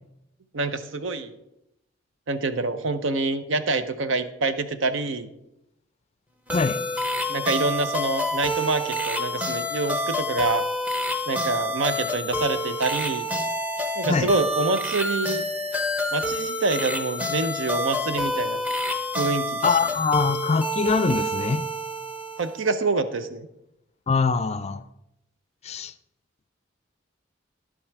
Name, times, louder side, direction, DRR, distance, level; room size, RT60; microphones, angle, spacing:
voice 1, 0.5-1.4 2.3-5.3 7.3-10.6 11.3-13.3 14.0-15.4 16.1-18.6 19.1-19.7 22.4-23.5, right 3 dB, 80° right, 11 dB, 0.7 m, -26 dB
sound 1, 6.5-22.7, left 1 dB, 10° right, 0.8 m, -28 dB
voice 2, 19.6-21.6 24.1-24.8 25.6-25.9, left 4 dB, 35° left, 14 dB, 0.4 m, -23 dB
10.5 x 7.4 x 4.6 m, 0.83 s
head